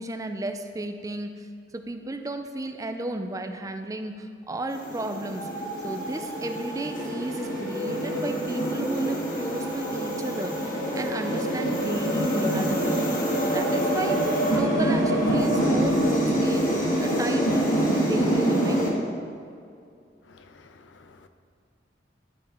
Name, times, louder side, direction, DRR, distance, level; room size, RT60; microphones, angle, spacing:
voice 1, 0.0-1.5 1.7-14.2 14.5-18.9, right 2 dB, 20° right, 6 dB, 0.4 m, -33 dB
sound 1, 4.7-18.9, right 1 dB, 50° left, 2.0 m, -25 dB
voice 2, 20.2-21.3, left 3 dB, 80° left, 8 dB, 0.6 m, -53 dB
12.5 x 5.0 x 3.9 m, 2.3 s
head